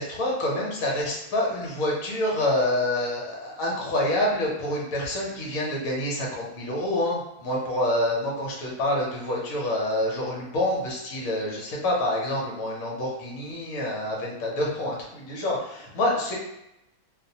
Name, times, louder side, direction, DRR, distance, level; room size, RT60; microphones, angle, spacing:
voice 1, 0.0-16.4, left 1 dB, 70° left, -2 dB, 1.1 m, -27 dB
2.6 x 2.1 x 2.7 m, 0.85 s
omnidirectional pair, 1.5 m